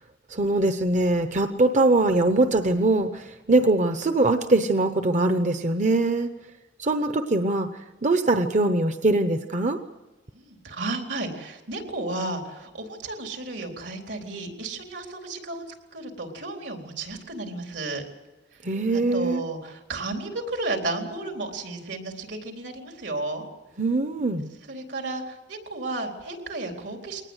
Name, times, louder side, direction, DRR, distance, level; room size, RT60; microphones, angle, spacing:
voice 1, 0.3-6.3 6.8-7.7 8.0-9.8 18.6-19.4 23.8-24.5, right 2 dB, 40° right, 8 dB, 0.9 m, -22 dB
voice 2, 10.3-15.6 15.9-18.0 18.9-23.4 24.7-27.2, right 2 dB, 80° right, 3 dB, 4.0 m, -33 dB
22.5 x 19.5 x 8.1 m, 1.1 s
head